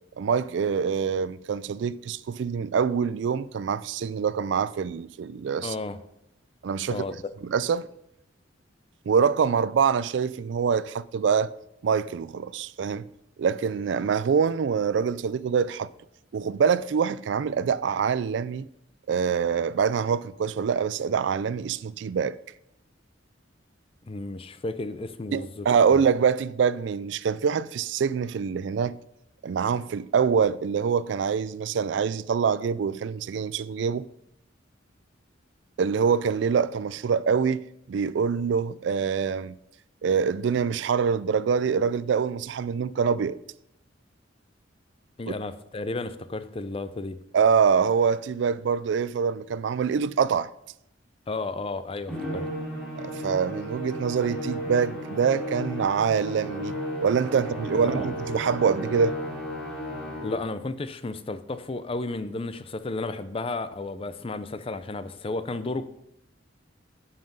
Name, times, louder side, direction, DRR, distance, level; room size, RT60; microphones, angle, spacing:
voice 1, 0.2-5.7 6.6-7.0 7.5-7.9 9.1-11.5 11.8-13.1 13.4-15.9 16.3-18.7 19.1-22.4 25.3-29.0 29.4-34.1 35.8-37.6 37.9-39.5 40.0-43.4 45.3-45.4 47.3-50.5 53.0-56.7 57.0-59.2, right 6 dB, 65° right, 0.3 m, -25 dB
voice 2, 5.6-6.0 6.9-7.3 24.0-25.7 25.9-26.0 45.2-47.2 51.3-52.5 57.7-58.1 60.2-65.9, left 2 dB, 30° left, 0.5 m, -33 dB
Musical instrument, 52.1-60.5, equal, ahead, 2.9 m, -34 dB
9.9 x 5.8 x 5.4 m
head